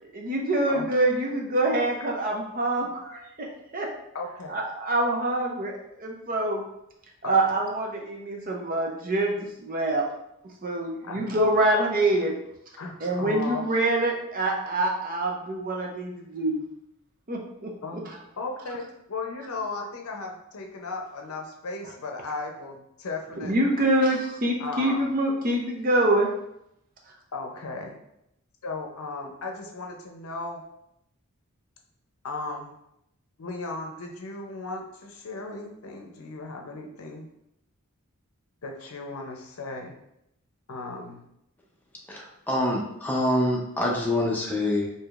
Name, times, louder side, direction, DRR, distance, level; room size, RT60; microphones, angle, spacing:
voice 1, 0.0-3.5 3.7-3.9 4.5-6.6 7.2-10.0 10.6-12.4 13.0-16.6 17.3-17.7 23.4-26.3, right 1 dB, 40° right, 0 dB, 0.6 m, -25 dB
voice 2, 4.1-4.6 7.2-7.3 11.0-11.3 12.8-13.6 17.8-18.1 18.4-23.9 24.6-25.1 27.3-28.0 28.6-30.6 32.2-32.7 33.4-37.3 38.6-40.0 40.7-41.3, left 3 dB, 70° left, 2 dB, 0.6 m, -36 dB
voice 3, 42.1-44.9, left 1 dB, 10° left, -2 dB, 0.6 m, -26 dB
4.7 x 2.7 x 2.4 m, 0.80 s
head